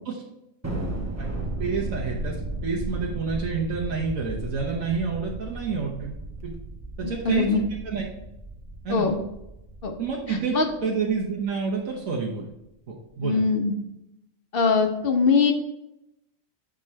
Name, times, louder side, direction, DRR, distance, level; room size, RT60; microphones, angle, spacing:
Thunder, 0.6-11.3, right 1 dB, 15° right, 0.8 m, -35 dB
voice 1, 1.6-6.2 6.4-6.5 7.0-8.1 8.8-9.1 10.0-10.5 10.8-12.5 12.9-13.4, right 5 dB, 85° right, -3 dB, 1.4 m, -28 dB
voice 2, 7.0-7.6 8.9-9.2 9.8-9.9 10.3-10.7 13.2-13.7 14.5-15.5, left 5 dB, 50° left, 4 dB, 1.0 m, -22 dB
7.8 x 3.7 x 4.3 m, 0.86 s
omnidirectional pair, 1.4 m